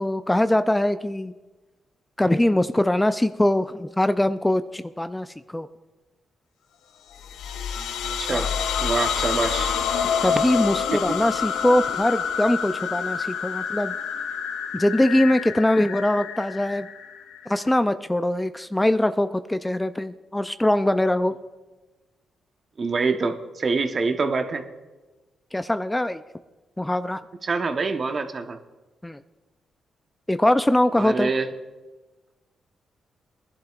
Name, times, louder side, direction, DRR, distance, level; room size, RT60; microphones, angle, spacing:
voice 1, 0.0-1.3 2.2-5.7 8.3-8.5 10.2-14.0 14.7-16.9 17.5-21.3 25.5-26.2 26.8-27.2 29.0-29.2 30.3-31.3, left 1 dB, 10° left, 11 dB, 0.4 m, -22 dB
sound 1, 7.2-17.8, left 7 dB, 90° left, 0.5 m, -28 dB
voice 2, 8.8-9.7 10.9-11.0 22.8-24.6 27.4-28.6 31.0-31.5, right 4 dB, 45° right, 7 dB, 1.0 m, -25 dB
21.0 x 11.5 x 2.4 m, 1.2 s
cardioid pair, 75°, 0 cm